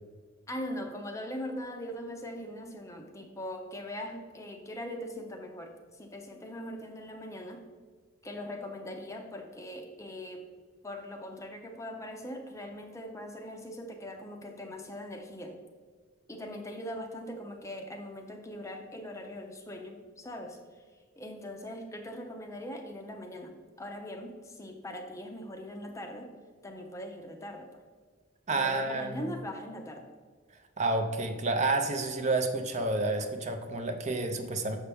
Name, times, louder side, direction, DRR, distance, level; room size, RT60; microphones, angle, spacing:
voice 1, 0.5-7.6 8.2-10.4 10.8-15.6 16.3-20.8 21.2-26.3 26.6-27.8 28.5-30.1, left 1 dB, 15° left, 4 dB, 0.5 m, -41 dB
voice 2, 28.5-29.3 30.8-34.8, right 2 dB, 35° right, 6 dB, 0.5 m, -29 dB
7.0 x 5.6 x 3.4 m, 1.5 s
head